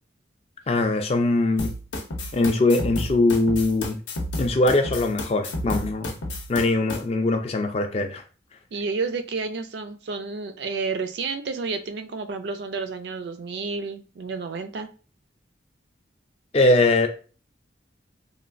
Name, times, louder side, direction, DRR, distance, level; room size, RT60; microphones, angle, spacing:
voice 1, 0.7-1.7 2.3-4.0 4.4-6.1 6.5-8.2 16.5-17.1, left 2 dB, 35° left, 6 dB, 0.3 m, -21 dB
sound 1, 1.6-7.0, left 1 dB, 80° left, 0.6 m, -31 dB
voice 2, 8.7-14.9, right 4 dB, 60° right, 8 dB, 0.3 m, -30 dB
3.1 x 2.3 x 2.5 m, 0.36 s
head